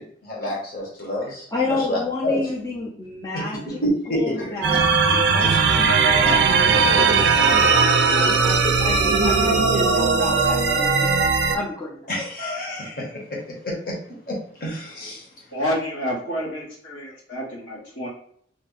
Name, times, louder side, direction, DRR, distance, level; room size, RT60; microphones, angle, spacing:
voice 1, 0.0-2.4 3.8-4.4 12.1-13.2 13.6-13.9 14.3-15.2, equal, 50° left, -3 dB, 1.2 m, -28 dB
voice 2, 1.5-3.8 4.1-4.8 5.3-11.2 11.5-12.1, left 2 dB, 20° left, -4 dB, 0.5 m, -31 dB
sound 1, 4.6-11.6, right 4 dB, 60° right, 0.4 m, -18 dB
voice 3, 15.5-18.1, equal, 90° left, -6 dB, 1.5 m, -29 dB
3.4 x 2.2 x 3.9 m, 0.62 s
head